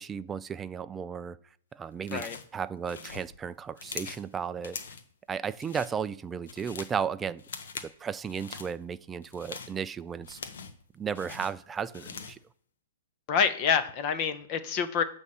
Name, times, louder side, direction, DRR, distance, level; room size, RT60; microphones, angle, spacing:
voice 1, 0.0-1.4 1.7-4.8 5.3-7.4 8.0-10.4 10.9-12.4, right 7 dB, 15° right, 14 dB, 0.3 m, -34 dB
sound 1, 2.0-2.5 2.8-4.3 4.6-5.1 5.5-5.9 6.3-7.0 7.4-7.9 8.2-8.7 9.2-10.8 11.1-12.4, left 5 dB, 80° left, 1.0 m, -42 dB
voice 2, 13.3-15.0, left 7 dB, 35° left, 12 dB, 0.8 m, -27 dB
8.2 x 3.6 x 5.5 m, 0.63 s
hypercardioid pair, 150°, 0 cm